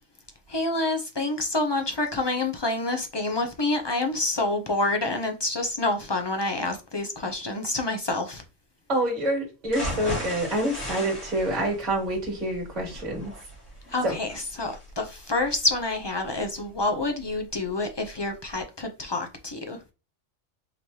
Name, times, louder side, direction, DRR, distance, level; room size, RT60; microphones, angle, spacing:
voice 1, 0.5-8.4 13.9-19.8, left 2 dB, 45° left, 0.3 m, -28 dB
voice 2, 8.9-13.3 14.0-14.2, right 1 dB, 35° right, 1.8 m, -27 dB
sound 1, 9.7-17.6 18.0-18.1 18.5-18.6, equal, 75° left, 2.3 m, -37 dB
5.0 x 3.1 x 2.8 m
omnidirectional pair, 1.4 m